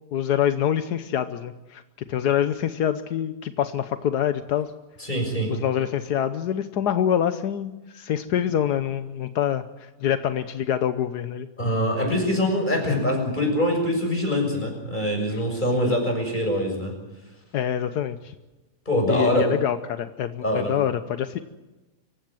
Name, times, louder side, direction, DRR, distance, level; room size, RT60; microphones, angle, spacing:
voice 1, 0.1-1.8 2.1-4.7 5.5-9.6 10.0-11.5 15.7-16.0 17.5-18.3 19.1-21.4, left 9 dB, 80° left, 10 dB, 1.5 m, -25 dB
voice 2, 5.0-5.6 11.6-17.0 18.9-19.5 20.4-20.8, equal, 30° left, 2 dB, 6.9 m, -24 dB
26.5 x 16.0 x 7.7 m, 1.1 s
omnidirectional pair, 1.7 m